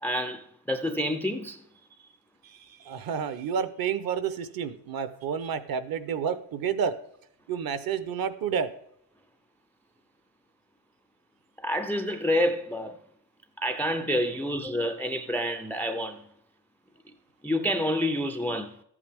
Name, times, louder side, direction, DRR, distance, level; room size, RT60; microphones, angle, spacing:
voice 1, 0.0-1.6 11.6-13.0 13.6-16.2 17.4-18.8, equal, 5° left, 0.3 m, -28 dB
voice 2, 2.4-6.9 7.5-8.7, right 7 dB, 50° right, 0.8 m, -30 dB
13.5 x 8.5 x 3.5 m
cardioid pair, 160°, 45 cm